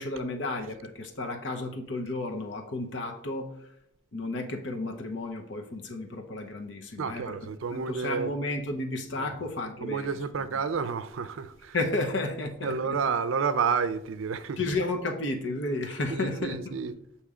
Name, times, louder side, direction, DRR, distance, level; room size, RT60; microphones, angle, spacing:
voice 1, 0.0-3.5 4.1-10.2 11.7-13.0 14.6-16.6, left 2 dB, 65° left, 0.8 m, -32 dB
voice 2, 7.0-8.3 9.2-9.3 9.8-11.8 12.6-14.6 16.1-16.9, right 5 dB, 80° right, 0.4 m, -30 dB
6.8 x 2.9 x 4.8 m
head